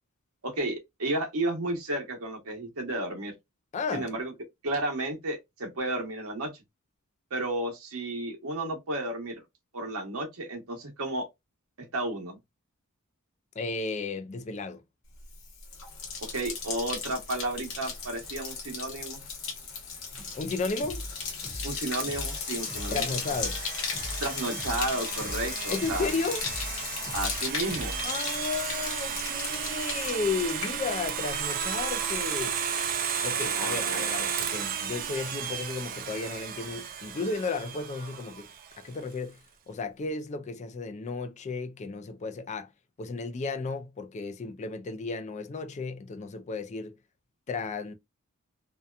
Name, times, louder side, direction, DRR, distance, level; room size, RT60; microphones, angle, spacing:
voice 1, 0.4-3.3 3.9-4.3 4.6-6.6 7.3-9.4 9.7-11.3 11.9-12.4 16.2-19.2 21.6-23.1 24.2-26.1 27.1-28.0 33.4-34.1, right 2 dB, 90° right, 1.0 m, -32 dB
voice 2, 3.7-4.1 13.6-14.8 20.3-21.0 22.9-23.6 25.7-26.5 28.0-32.6 33.2-38.5 38.8-39.4 39.7-42.7 43.0-47.0 47.5-47.9, left 4 dB, 35° left, 0.3 m, -33 dB
Bathtub (filling or washing), 15.2-31.3 31.6-32.1, left 5 dB, 60° left, 0.9 m, -36 dB
sound 1, 20.1-28.1, equal, ahead, 0.9 m, -41 dB
Domestic sounds home sounds, 22.0-38.8, right 7 dB, 40° right, 0.4 m, -34 dB
2.7 x 2.2 x 2.3 m
head